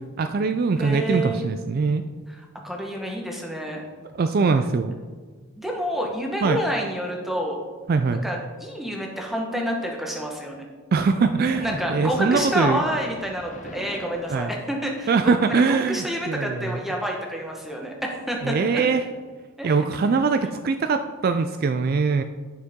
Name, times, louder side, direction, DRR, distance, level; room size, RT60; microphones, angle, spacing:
voice 1, 0.2-2.0 4.1-4.9 6.4-6.6 7.9-8.2 10.9-12.8 14.3-14.5 15.1-16.8 18.4-19.0 19.6-22.2, right 4 dB, 45° right, 9 dB, 0.3 m, -22 dB
voice 2, 0.8-1.5 2.3-3.8 5.6-7.6 8.2-10.6 11.6-17.9 18.3-18.8 19.6-19.8, equal, ahead, 0 dB, 1.1 m, -28 dB
Splash splatter, 11.0-15.1, left 2 dB, 35° left, 0.6 m, -39 dB
9.5 x 6.5 x 3.6 m, 1.5 s
head